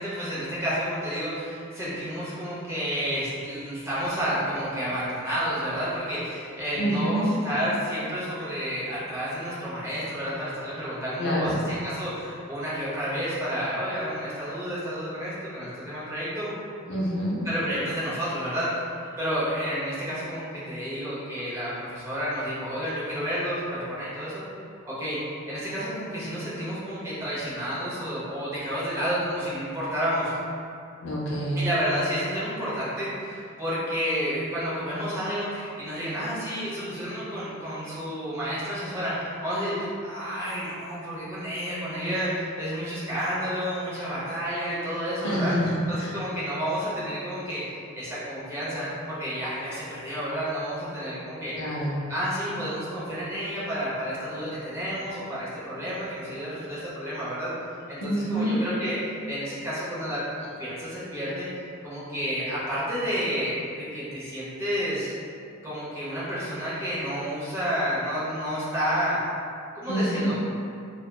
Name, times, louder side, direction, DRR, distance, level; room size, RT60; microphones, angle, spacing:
voice 1, 0.0-16.5 17.4-18.9 19.2-24.4 24.8-25.2 25.5-30.3 31.5-51.5 52.1-57.5 57.9-61.5 61.8-65.1 65.6-69.2 69.7-70.4, equal, 15° right, -10 dB, 0.6 m, -30 dB
voice 2, 6.8-7.3 11.2-11.6 16.9-17.4 31.0-31.7 45.2-46.1 51.6-52.0 58.0-58.6 69.9-70.3, equal, 55° left, -5 dB, 0.5 m, -27 dB
2.7 x 2.2 x 2.2 m, 2.4 s
head